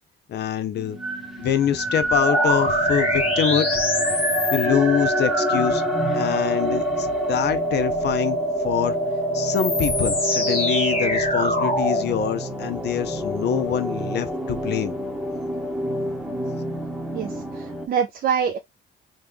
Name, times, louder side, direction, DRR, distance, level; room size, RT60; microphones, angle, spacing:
voice 1, 0.3-1.0 1.4-3.7 4.5-5.8 6.1-8.4 8.6-9.0 9.3-14.9, left 9 dB, 60° left, 0.5 m, -25 dB
sound 1, 0.8-17.9, equal, ahead, 0.9 m, -29 dB
sound 2, 2.1-12.1, equal, 30° left, 1.2 m, -24 dB
voice 2, 17.1-18.6, right 7 dB, 50° right, 0.4 m, -25 dB
3.0 x 2.3 x 3.3 m
cardioid pair, 90°, 20 cm